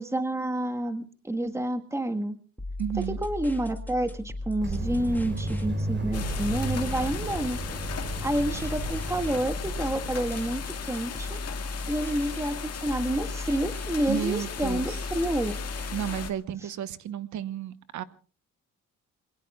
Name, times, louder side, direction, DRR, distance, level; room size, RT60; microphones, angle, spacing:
voice 1, 0.0-2.4 3.0-7.6 8.2-11.4 11.9-15.5, right 1 dB, 10° right, 7 dB, 1.5 m, -29 dB
sound 1, 2.6-16.3, left 2 dB, 5° left, 2.3 m, -36 dB
voice 2, 2.8-3.2 14.1-15.0 15.9-18.0, right 10 dB, 70° right, 13 dB, 1.2 m, -32 dB
sound 2, 4.6-11.4, right 2 dB, 35° right, 3.6 m, -34 dB
sound 3, 6.1-16.3, left 8 dB, 55° left, 1.9 m, -38 dB
27.5 x 22.0 x 2.4 m, 0.37 s
cardioid pair, 90°, 30 cm